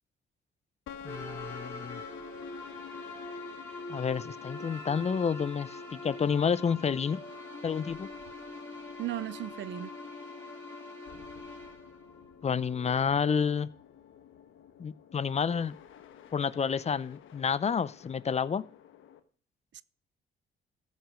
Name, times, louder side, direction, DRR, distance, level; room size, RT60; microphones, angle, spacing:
sound 1, 0.9-19.2, left 8 dB, 80° left, 1.2 m, -51 dB
voice 1, 1.0-2.0 3.9-7.2 7.6-8.1 12.4-13.7 14.8-15.7 16.3-18.6, left 6 dB, 35° left, 0.6 m, -29 dB
sound 2, 1.1-12.9, left 2 dB, 10° left, 3.3 m, -44 dB
voice 2, 9.0-9.9 19.7-19.8, right 13 dB, 65° right, 0.5 m, -36 dB
14.5 x 6.4 x 5.0 m
cardioid pair, 90°, 20 cm